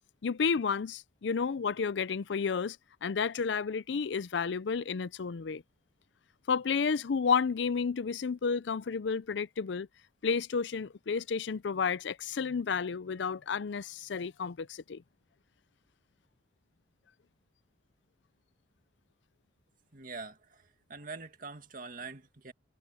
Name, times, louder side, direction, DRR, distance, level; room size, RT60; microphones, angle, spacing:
voice 1, 0.2-5.6 6.5-9.9 10.2-15.0, left 5 dB, 75° left, 0.5 m, -31 dB
voice 2, 19.9-22.5, right 4 dB, 50° right, 2.1 m, -44 dB
head